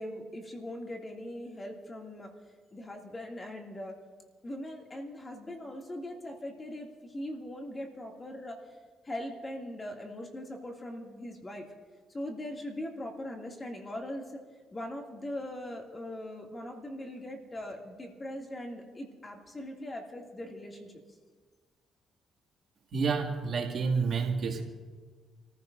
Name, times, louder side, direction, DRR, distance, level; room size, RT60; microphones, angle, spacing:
voice 1, 0.0-2.3 2.7-4.0 4.4-8.6 9.0-11.7 12.1-14.4 14.7-20.9, left 1 dB, 25° left, 1 dB, 2.4 m, -40 dB
voice 2, 22.9-24.6, right 5 dB, 55° right, 1 dB, 2.3 m, -29 dB
29.0 x 15.0 x 2.6 m, 1.5 s
cardioid pair, 90°, 0 cm